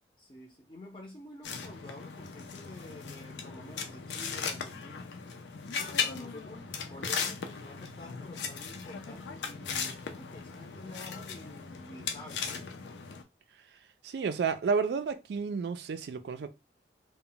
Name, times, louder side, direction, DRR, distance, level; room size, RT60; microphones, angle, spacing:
voice 1, 0.2-5.1 5.8-12.7, left 1 dB, 30° left, 0.5 m, -49 dB
sound 1, 1.4-13.2, left 6 dB, 90° left, 0.5 m, -38 dB
voice 2, 14.0-16.5, right 5 dB, 70° right, 0.3 m, -31 dB
2.1 x 2.1 x 3.8 m
head